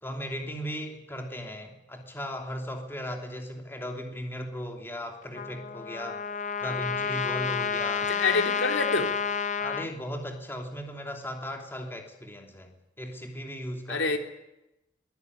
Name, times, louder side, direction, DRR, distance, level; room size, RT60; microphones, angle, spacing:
voice 1, 0.0-6.2 6.6-8.1 9.6-14.2, equal, 10° left, 3 dB, 2.9 m, -37 dB
Trumpet, 5.3-9.9, left 6 dB, 40° left, 1.0 m, -30 dB
voice 2, 8.1-9.1 13.9-14.2, left 3 dB, 80° left, 5 dB, 3.4 m, -26 dB
23.0 x 20.0 x 9.6 m, 0.91 s
head